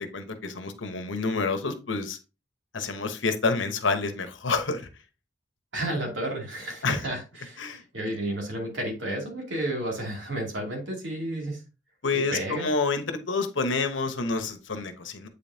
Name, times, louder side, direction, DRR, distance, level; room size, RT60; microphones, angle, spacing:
voice 1, 0.1-2.2 2.7-4.9 6.8-7.1 7.6-7.8 12.0-15.3, left 4 dB, 90° left, 8 dB, 1.0 m, -28 dB
voice 2, 5.7-11.6 12.1-12.7, right 1 dB, 85° right, 0 dB, 2.7 m, -32 dB
8.2 x 5.3 x 2.7 m, 0.30 s
head